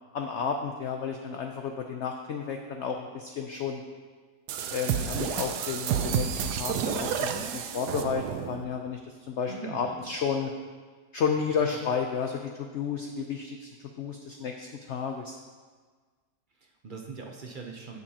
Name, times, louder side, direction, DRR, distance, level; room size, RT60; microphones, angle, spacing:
voice 1, 0.1-3.8 4.7-10.5 11.1-15.4, left 6 dB, 65° left, 3 dB, 0.7 m, -32 dB
sound 1, 4.5-8.6, right 8 dB, 85° right, 1.2 m, -30 dB
voice 2, 9.5-10.2 11.7-11.8 16.5-18.0, right 4 dB, 50° right, 1 dB, 0.6 m, -42 dB
16.0 x 5.4 x 2.8 m, 1.5 s
omnidirectional pair, 1.7 m